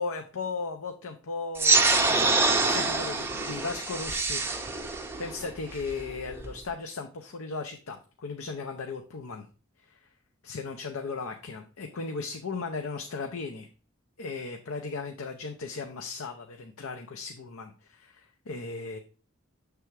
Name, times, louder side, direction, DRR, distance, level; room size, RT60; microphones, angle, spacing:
voice 1, 0.0-4.9 5.2-9.5 9.9-10.0 10.4-13.7 14.2-19.0, left 4 dB, 80° left, 5 dB, 0.6 m, -36 dB
sound 1, 1.6-6.6, right 3 dB, 10° right, 0.5 m, -26 dB
6.7 x 3.4 x 4.6 m, 0.37 s
head